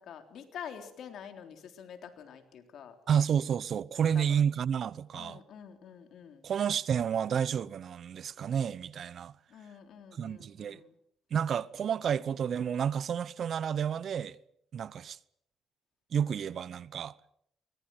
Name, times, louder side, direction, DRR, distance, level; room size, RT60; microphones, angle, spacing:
voice 1, 0.0-3.0 4.1-4.4 5.1-6.4 9.5-11.0, left 8 dB, 70° left, 3.6 m, -47 dB
voice 2, 3.1-5.4 6.4-9.3 10.1-10.8 11.3-14.4 14.7-15.2 16.1-17.1, right 8 dB, 60° right, 0.9 m, -30 dB
23.0 x 20.0 x 7.8 m
cardioid pair, 90°, 0 cm